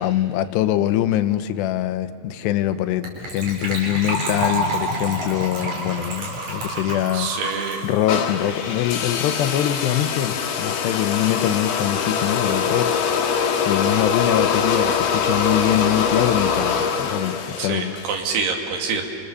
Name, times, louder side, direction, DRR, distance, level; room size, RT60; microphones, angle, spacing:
voice 1, 0.0-7.3 7.8-12.9 13.3-17.9, left 12 dB, 85° left, 11 dB, 3.0 m, -23 dB
Gurgling / Trickle dribble / Fill (with liquid), 3.0-9.3 9.5-9.6 9.8-10.0 10.3-10.4, right 1 dB, 50° right, 6.2 m, -28 dB
voice 2, 7.1-7.8 17.6-19.0, right 5 dB, 75° right, 3 dB, 4.2 m, -26 dB
sound 1, 8.1-18.3, left 6 dB, 70° left, 3.4 m, -23 dB
29.5 x 26.5 x 7.0 m, 2.3 s
omnidirectional pair, 4.8 m